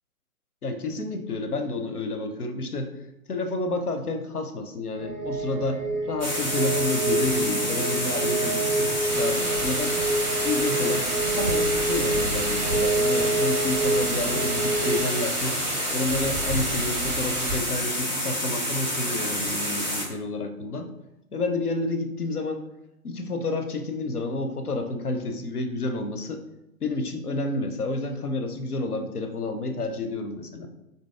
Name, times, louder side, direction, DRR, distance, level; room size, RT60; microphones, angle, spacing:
voice 1, 0.6-2.9 3.3-10.0 10.4-15.6 15.9-20.9 21.3-22.6 23.0-26.4 26.8-30.7, left 2 dB, 90° left, 6 dB, 0.6 m, -30 dB
sound 1, 5.0-15.0, right 2 dB, 30° right, 0.7 m, -27 dB
sound 2, 6.2-20.1, equal, 30° left, 0.5 m, -29 dB
sound 3, 9.1-17.6, right 2 dB, 80° right, 0.7 m, -33 dB
3.9 x 2.7 x 2.4 m, 0.87 s
figure-of-eight pair, 145°, 44 cm